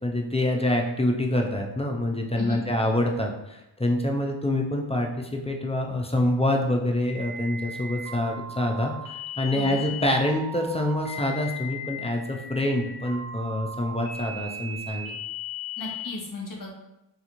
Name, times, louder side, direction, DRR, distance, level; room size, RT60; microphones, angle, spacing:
voice 1, 0.0-15.2, left 1 dB, 15° left, 1 dB, 0.3 m, -26 dB
voice 2, 2.4-2.7 9.5-9.9 15.8-16.7, left 2 dB, 45° left, -1 dB, 0.8 m, -35 dB
sound 1, 7.1-16.1, left 2 dB, 5° right, 1.3 m, -37 dB
3.4 x 2.4 x 2.9 m, 0.90 s
wide cardioid pair, 50°, 48 cm